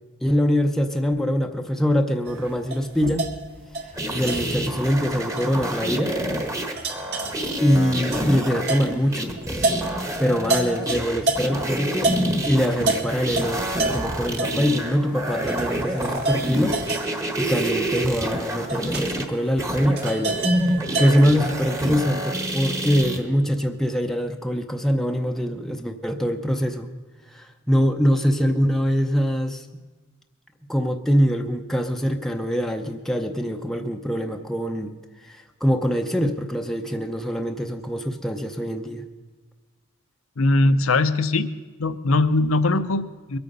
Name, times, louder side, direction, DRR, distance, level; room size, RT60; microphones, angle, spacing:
voice 1, 0.2-3.3 4.1-6.2 7.6-9.4 10.2-12.2 12.4-20.4 21.0-26.9 27.3-29.8 30.7-34.9 35.2-39.0, equal, ahead, 3 dB, 0.6 m, -23 dB
sound 1, 2.3-11.7 12.0-21.3, right 2 dB, 50° right, 1.8 m, -30 dB
sound 2, 4.0-23.2, right 1 dB, 15° right, 1.2 m, -28 dB
voice 2, 40.4-41.5 41.8-43.4, left 2 dB, 75° left, 13 dB, 0.7 m, -20 dB
22.5 x 8.7 x 5.4 m, 1.3 s
head